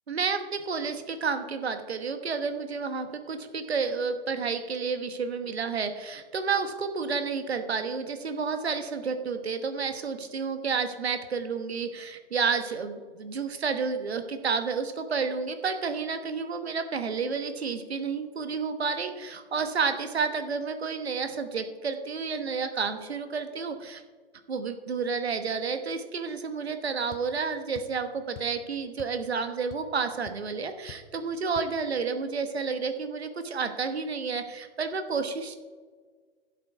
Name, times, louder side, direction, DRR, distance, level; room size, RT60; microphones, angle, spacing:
voice 1, 0.1-24.0 24.5-35.6, right 5 dB, 85° right, 8 dB, 1.2 m, -30 dB
sound 1, 27.1-27.3 27.7-28.0 28.4-28.6 29.0-29.2 29.5-30.0 30.3-30.4 30.9-31.1 31.6-31.7, left 10 dB, 35° left, 0.8 m, -46 dB
12.0 x 7.4 x 4.7 m, 1.5 s
hypercardioid pair, 115°, 31 cm